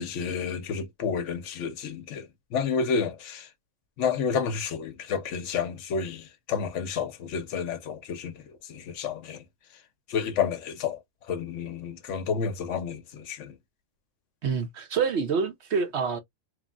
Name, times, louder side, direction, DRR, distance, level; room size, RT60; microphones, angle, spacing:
voice 1, 0.0-3.5 4.0-9.4 10.1-11.0 11.3-13.6, left 6 dB, 75° left, 1.0 m, -30 dB
voice 2, 14.4-16.2, right 5 dB, 65° right, 0.9 m, -27 dB
3.1 x 2.5 x 2.2 m
omnidirectional pair, 1.3 m